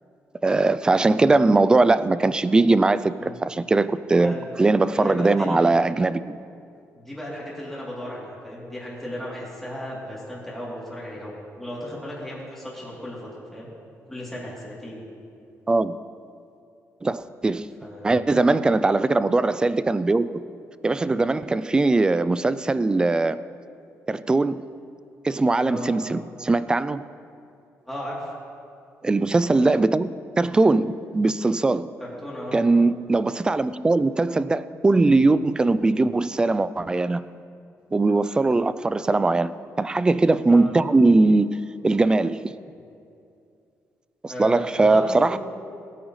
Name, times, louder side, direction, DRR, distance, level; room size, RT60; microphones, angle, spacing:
voice 1, 0.4-6.4 15.7-16.0 17.0-17.7 18.0-20.3 20.8-23.4 24.1-24.7 25.2-27.0 29.0-32.0 32.5-37.3 37.9-41.6 41.8-42.6 44.2-45.4, right 3 dB, 15° right, 15 dB, 0.3 m, -20 dB
voice 2, 5.0-5.6 6.9-13.7 14.1-15.0 17.8-18.2 25.6-25.9 27.9-28.3 32.2-32.5 38.4-38.5 40.5-40.7 44.3-45.4, left 1 dB, 5° left, -6 dB, 3.1 m, -35 dB
19.0 x 9.0 x 3.2 m, 2.5 s
cardioid pair, 135°, 5 cm